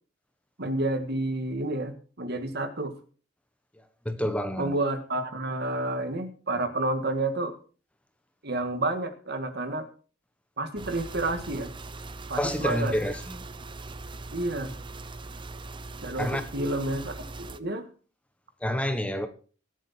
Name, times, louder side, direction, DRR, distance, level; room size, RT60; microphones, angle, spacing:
voice 1, 0.6-2.9 4.6-7.5 8.4-9.9 10.6-11.7 12.3-13.0 14.3-14.8 16.0-17.9, right 2 dB, 55° right, 8 dB, 1.9 m, -30 dB
voice 2, 4.0-4.7 12.4-13.4 16.2-16.4 18.6-19.3, equal, 5° left, 8 dB, 1.0 m, -28 dB
sound 1, 10.8-17.6, right 3 dB, 25° right, 0.7 m, -41 dB
22.0 x 7.8 x 4.3 m, 0.39 s
head